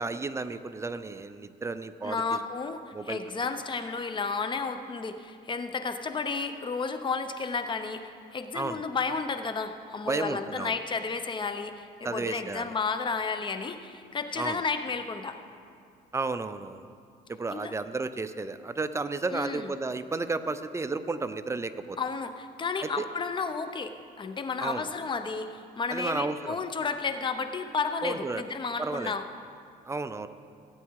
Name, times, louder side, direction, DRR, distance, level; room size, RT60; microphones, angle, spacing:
voice 1, 0.0-2.4 2.9-3.2 8.5-8.8 10.1-10.7 12.0-12.7 14.4-14.6 16.1-16.9 17.3-22.0 22.8-23.1 24.6-24.8 25.9-26.6 28.0-28.4 28.8-29.1 29.9-30.3, right 3 dB, 15° right, 11 dB, 0.5 m, -32 dB
voice 2, 2.0-15.4 17.5-17.7 19.3-19.7 22.0-29.2, left 4 dB, 30° left, 8 dB, 0.8 m, -32 dB
16.5 x 8.6 x 4.7 m, 2.4 s
cardioid pair, 110°, 17 cm